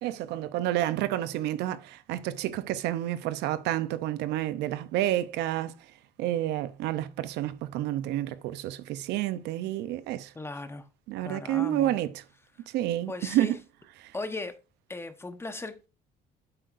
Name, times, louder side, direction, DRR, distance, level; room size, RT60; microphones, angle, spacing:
voice 1, 0.0-5.7 6.2-10.3 11.1-12.1 12.7-13.6 14.0-14.1, right 13 dB, 85° right, 0.7 m, -29 dB
voice 2, 10.3-10.9 11.2-12.0 13.1-13.6 14.1-14.6 14.9-15.9, left 2 dB, 15° left, 1.1 m, -37 dB
8.8 x 7.7 x 2.6 m
cardioid pair, 110°, 17 cm